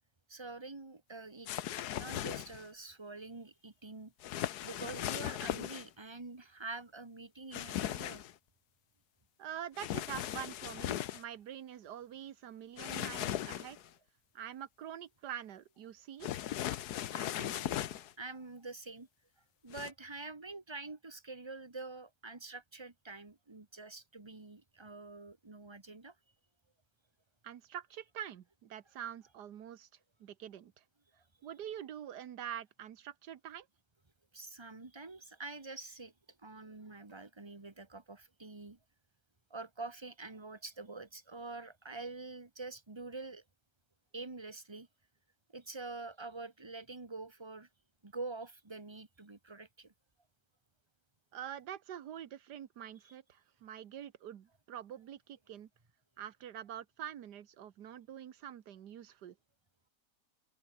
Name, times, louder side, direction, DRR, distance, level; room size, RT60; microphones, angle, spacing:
voice 1, 0.3-1.6 1.9-4.1 4.6-8.2 17.1-19.1 19.6-26.1 34.3-36.1 36.4-38.8 39.5-43.4 44.1-44.9 45.5-47.7 48.0-49.9 53.0-53.1, right 3 dB, 15° right, 1.7 m, -46 dB
sound 1, 1.5-2.7 4.2-5.9 7.5-8.3 9.8-11.2 12.8-13.9 16.2-18.1 19.7-19.9, left 12 dB, 70° left, 1.3 m, -38 dB
voice 2, 9.4-13.8 14.3-16.3 27.4-29.9 30.2-30.8 31.4-33.7 51.3-55.7 56.2-59.4, right 10 dB, 70° right, 1.7 m, -45 dB
open air
omnidirectional pair, 1.9 m